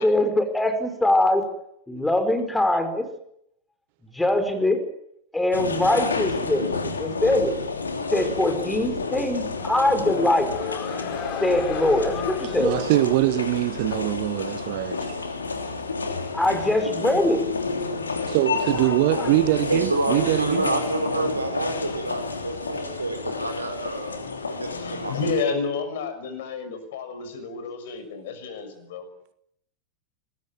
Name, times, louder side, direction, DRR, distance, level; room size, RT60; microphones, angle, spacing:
voice 1, 0.0-1.5 1.9-3.1 4.1-4.8 5.3-7.6 8.1-10.5 11.4-12.7 16.3-17.4 18.9-19.3, left 1 dB, 5° left, 5.2 m, -22 dB
sound 1, 5.5-25.4, left 4 dB, 75° left, 3.1 m, -30 dB
sound 2, 9.6-14.0, left 7 dB, 35° left, 4.2 m, -36 dB
voice 2, 12.6-15.2 18.3-20.7, right 17 dB, 50° right, 1.3 m, -23 dB
voice 3, 19.7-24.2 24.5-25.1, right 2 dB, 80° right, 5.0 m, -28 dB
voice 4, 24.6-29.1, left 4 dB, 55° left, 6.2 m, -31 dB
26.0 x 20.5 x 9.3 m
figure-of-eight pair, 90°, 0 cm